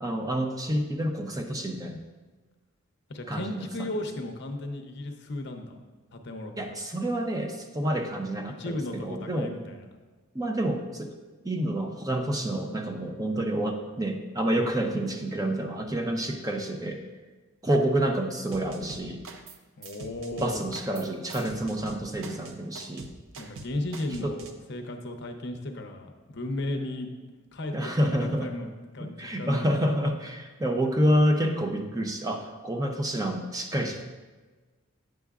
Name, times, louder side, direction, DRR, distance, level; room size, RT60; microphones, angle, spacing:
voice 1, 0.0-2.0 3.3-3.9 6.6-9.5 10.3-11.1 11.4-17.0 17.6-19.2 20.4-23.1 24.2-24.3 27.7-28.5 29.0-34.0, right 1 dB, 15° right, 4 dB, 0.5 m, -28 dB
voice 2, 3.1-5.8 6.1-6.5 8.5-9.9 19.8-20.7 23.4-27.1 27.5-30.0, left 1 dB, 50° left, 4 dB, 0.7 m, -35 dB
sound 1, 18.5-19.6 19.8-24.5, right 3 dB, 70° right, 0.6 m, -43 dB
9.0 x 6.9 x 2.4 m, 1.3 s
head